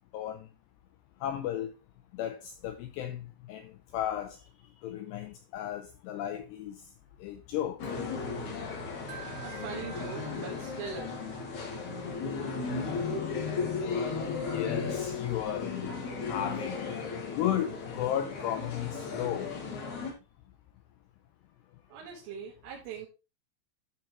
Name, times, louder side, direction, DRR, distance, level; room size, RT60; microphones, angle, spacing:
voice 1, 0.1-0.5 1.2-1.7 2.1-4.4 4.8-6.8 7.2-7.8 14.1-16.8 17.3-19.5, left 11 dB, 80° left, 2.5 m, -34 dB
sound 1, 7.8-20.1, left 4 dB, 50° left, 2.7 m, -35 dB
Wind chime, 9.1-12.2, right 15 dB, 75° right, 3.3 m, -51 dB
voice 2, 9.4-11.3 21.9-23.1, right 6 dB, 90° right, 4.2 m, -41 dB
11.5 x 6.3 x 3.1 m
omnidirectional pair, 5.5 m